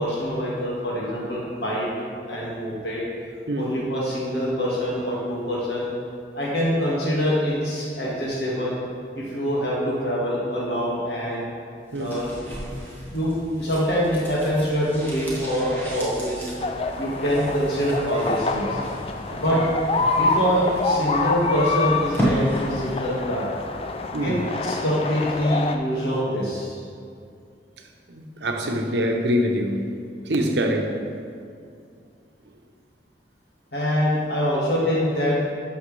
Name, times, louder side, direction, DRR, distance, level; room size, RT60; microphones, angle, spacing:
voice 1, 0.0-1.9 2.3-3.0 3.6-5.9 6.3-8.8 9.2-11.4 12.0-12.3 13.1-16.5 17.0-18.8 19.4-19.6 20.2-23.5 24.2-24.4 24.6-26.8 33.7-35.4, equal, 75° left, -6 dB, 1.9 m, -25 dB
sound 1, 11.9-23.1 23.4-23.5, equal, 10° left, 1.3 m, -33 dB
sound 2, 16.6-25.7, left 3 dB, 35° left, 0.4 m, -27 dB
voice 2, 19.3-19.6 24.1-24.4 28.1-29.8 30.2-31.0, equal, 90° right, 3 dB, 0.9 m, -25 dB
11.0 x 6.4 x 3.4 m, 2.3 s
head